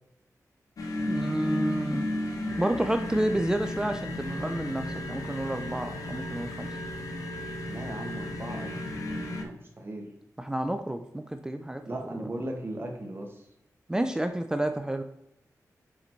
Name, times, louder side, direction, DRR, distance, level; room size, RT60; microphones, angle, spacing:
sound 1, 0.8-9.4, left 1 dB, 75° left, 1.1 m, -34 dB
voice 1, 1.1-2.1 2.6-6.8 10.4-11.8 12.1-12.3 13.9-15.0, right 1 dB, 10° right, 7 dB, 0.5 m, -30 dB
voice 2, 7.7-8.7 9.3-10.1 11.9-13.5, right 1 dB, 40° right, 2 dB, 1.4 m, -37 dB
6.7 x 4.1 x 4.4 m, 0.83 s
wide cardioid pair, 120°, 6 cm